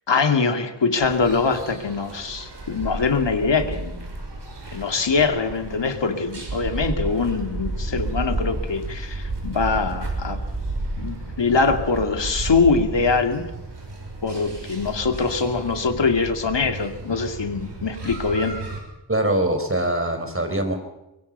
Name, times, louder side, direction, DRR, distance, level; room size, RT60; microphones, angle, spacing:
voice 1, 0.1-4.0 4.7-10.4 11.0-13.4 14.2-18.6, left 4 dB, 80° left, 6 dB, 2.5 m, -23 dB
sound 1, 1.0-18.8, right 2 dB, 70° right, 6.1 m, -32 dB
voice 2, 19.1-20.8, right 1 dB, 30° right, 6 dB, 4.7 m, -23 dB
24.0 x 22.0 x 5.6 m, 0.93 s
wide cardioid pair, 80°, 43 cm